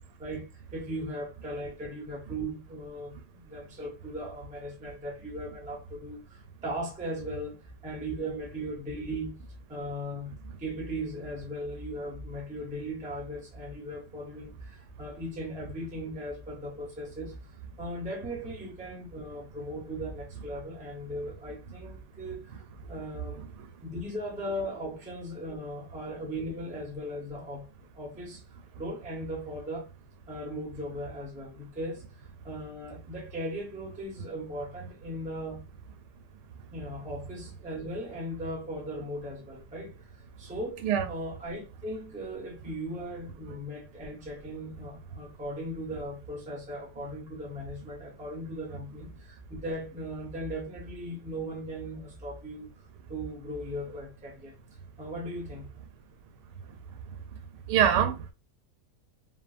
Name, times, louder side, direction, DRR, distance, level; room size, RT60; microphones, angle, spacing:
voice 1, 0.2-9.4 9.7-17.3 17.8-22.6 22.9-23.4 23.8-28.4 28.8-29.9 30.3-32.0 32.4-35.6 36.7-52.7 53.1-54.6 55.0-55.7, equal, 10° right, 0.4 m, -38 dB
voice 2, 57.7-58.3, right 9 dB, 80° right, 1.2 m, -24 dB
3.0 x 2.1 x 2.4 m
omnidirectional pair, 1.8 m